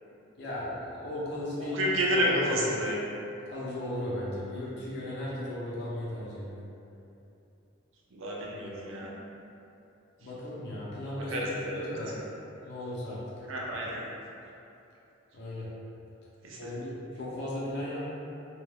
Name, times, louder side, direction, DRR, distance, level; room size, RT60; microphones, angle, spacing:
voice 1, 0.4-2.0 2.5-2.6 3.5-6.6 10.2-12.2 12.6-13.2 15.3-15.7 16.6-18.1, left 1 dB, 60° left, -8 dB, 0.7 m, -36 dB
voice 2, 1.5-3.0 8.1-9.1 11.2-12.0 13.5-14.0 16.4-16.7, equal, 90° right, -4 dB, 0.5 m, -30 dB
2.3 x 2.2 x 3.3 m, 2.8 s
head